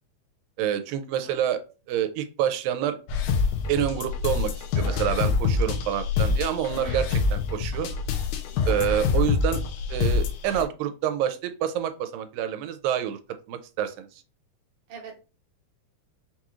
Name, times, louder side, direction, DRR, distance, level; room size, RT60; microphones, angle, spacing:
voice 1, 0.6-1.6 1.9-3.0 3.7-7.9 8.7-9.6 9.9-13.2 13.5-14.1, right 10 dB, 85° right, 8 dB, 2.2 m, -27 dB
sound 1, 3.1-10.6, left 5 dB, 75° left, 2.0 m, -25 dB
voice 2, 6.8-7.2 14.9-15.1, right 2 dB, 55° right, -1 dB, 1.6 m, -42 dB
5.8 x 3.0 x 2.4 m, 0.34 s
omnidirectional pair, 3.9 m